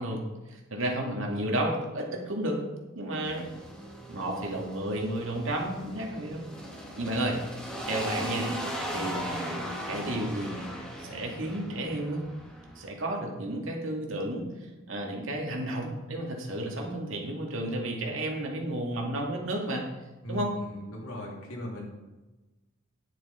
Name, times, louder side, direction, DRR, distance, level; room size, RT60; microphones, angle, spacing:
voice 1, 0.0-2.6 2.9-3.5 4.1-6.4 7.0-7.4 7.9-8.5 8.9-9.4 9.9-10.7 11.0-12.3 12.8-14.5 14.9-19.8 20.3-20.5, right 1 dB, 60° right, 0 dB, 2.4 m, -32 dB
sound 1, 3.2-12.9, equal, 5° left, 2.1 m, -38 dB
voice 2, 20.2-21.9, left 1 dB, 80° left, -2 dB, 3.3 m, -38 dB
10.5 x 8.9 x 4.4 m, 1.1 s
head